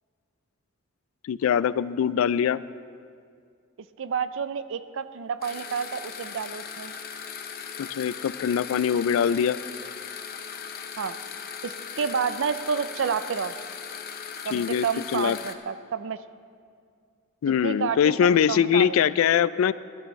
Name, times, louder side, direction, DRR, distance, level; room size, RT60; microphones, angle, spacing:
voice 1, 1.2-2.6 7.8-9.6 14.5-14.9 15.1-15.4 17.4-19.7, left 8 dB, 75° left, 18 dB, 0.3 m, -22 dB
voice 2, 4.0-6.9 11.0-11.2 11.6-13.5 14.4-16.2 17.6-18.2 18.5-19.1, right 6 dB, 65° right, 13 dB, 0.4 m, -29 dB
sound 1, 5.4-15.5, left 7 dB, 45° left, 0.6 m, -38 dB
15.5 x 11.5 x 3.1 m, 2.2 s
head